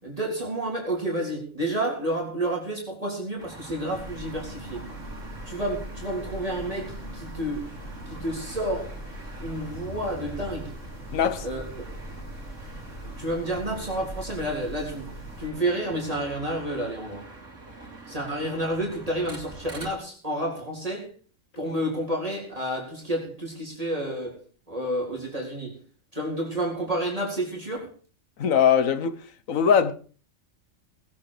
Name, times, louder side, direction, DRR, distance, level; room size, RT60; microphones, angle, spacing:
voice 1, 0.0-4.9 5.5-7.7 8.1-8.9 9.4-10.7 11.4-11.6 13.0-15.1 15.4-17.2 18.1-21.1 21.6-24.4 24.7-25.8 26.1-27.9, right 1 dB, 25° right, 3.9 m, -30 dB
sound 1, 3.4-19.9, right 2 dB, 70° right, 3.6 m, -45 dB
sound 2, 3.9-15.5, equal, 55° left, 4.1 m, -40 dB
voice 2, 11.1-11.5 28.4-29.2 29.5-29.9, left 7 dB, 80° left, 1.5 m, -21 dB
20.0 x 8.7 x 4.9 m
omnidirectional pair, 1.4 m